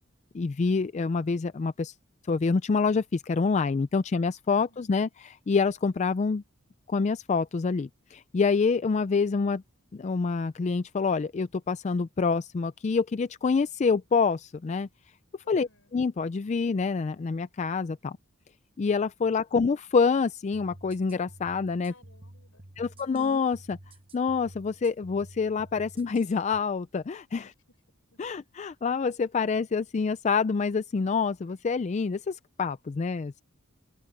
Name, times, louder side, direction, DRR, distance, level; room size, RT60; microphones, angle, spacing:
voice 1, 0.3-1.9 2.3-6.4 6.9-9.6 9.9-14.9 15.5-18.2 18.8-21.9 22.8-23.8 24.1-27.5 28.2-33.4, left 4 dB, 35° left, 0.3 m, -27 dB
voice 2, 4.5-4.9 15.4-15.9 19.5-19.6 21.9-23.3 27.5-27.6 28.1-28.2, left 2 dB, 70° left, 5.0 m, -61 dB
sound 1, 20.5-26.6, right 1 dB, 25° right, 1.2 m, -51 dB
open air
head